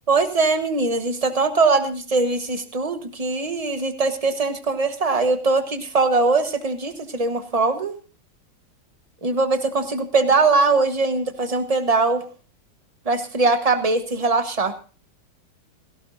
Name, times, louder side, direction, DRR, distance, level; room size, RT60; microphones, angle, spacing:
voice 1, 0.1-7.9 9.2-12.2 13.0-14.7, right 3 dB, 25° right, 8 dB, 0.9 m, -21 dB
17.0 x 16.5 x 2.6 m, 0.36 s
omnidirectional pair, 2.1 m